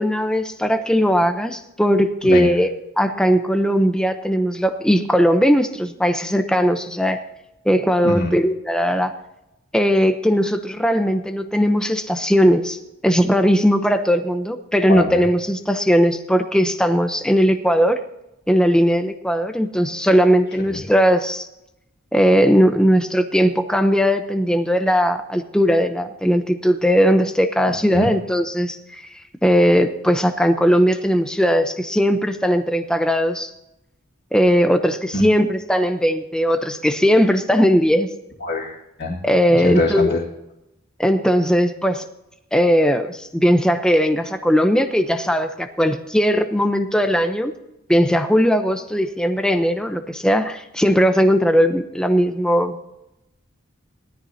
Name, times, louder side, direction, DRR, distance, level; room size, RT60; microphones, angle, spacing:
voice 1, 0.0-7.2 7.7-9.1 9.7-12.8 13.0-18.0 18.5-21.5 22.1-29.0 29.4-33.5 34.3-38.1 39.2-40.1 41.0-42.1 42.5-47.5 47.9-52.8, equal, 5° left, 6 dB, 0.7 m, -18 dB
voice 2, 14.9-15.2 20.7-20.8 27.9-28.1 35.1-35.2 38.4-39.2 39.5-40.2, left 2 dB, 50° left, -6 dB, 2.3 m, -23 dB
18.5 x 13.5 x 2.8 m, 0.88 s
head